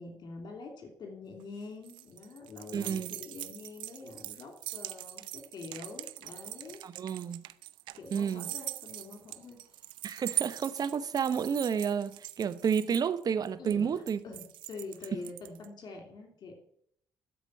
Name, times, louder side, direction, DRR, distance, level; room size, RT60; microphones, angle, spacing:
voice 1, 0.0-6.8 8.0-9.8 13.6-14.4 14.7-16.5, left 3 dB, 60° left, 2.9 m, -45 dB
sound 1, 1.4-15.7, right 16 dB, 75° right, 0.4 m, -41 dB
voice 2, 2.7-3.1 6.8-7.4 8.1-8.4 10.0-14.2, right 7 dB, 50° right, 0.9 m, -30 dB
12.5 x 5.0 x 7.4 m
hypercardioid pair, 50°, 8 cm